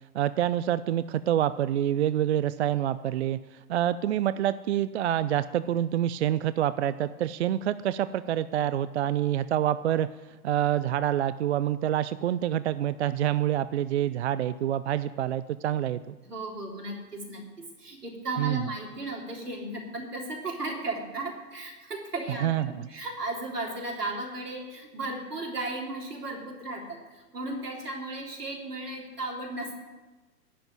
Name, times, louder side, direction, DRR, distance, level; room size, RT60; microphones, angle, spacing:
voice 1, 0.1-10.1 10.4-16.0 18.4-18.7 22.4-22.9, right 11 dB, 50° right, 15 dB, 0.5 m, -27 dB
voice 2, 16.2-29.7, right 2 dB, 80° right, 0 dB, 3.8 m, -35 dB
11.0 x 7.9 x 9.3 m, 1.2 s
hypercardioid pair, 125°, 46 cm